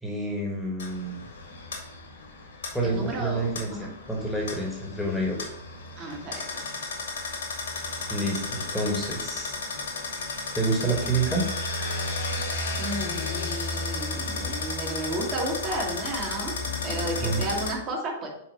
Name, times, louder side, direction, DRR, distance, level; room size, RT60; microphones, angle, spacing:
voice 1, 0.0-1.2 2.7-5.5 8.1-9.6 10.5-11.4 17.2-17.4, right 2 dB, ahead, -2 dB, 1.3 m, -28 dB
sound 1, 0.8-17.7, left 3 dB, 65° left, 1.5 m, -33 dB
voice 2, 2.8-3.9 6.0-6.6 12.8-16.5 16.8-18.3, right 1 dB, 35° right, -1 dB, 1.6 m, -32 dB
6.0 x 4.6 x 4.4 m, 0.75 s
figure-of-eight pair, 100°, 0 cm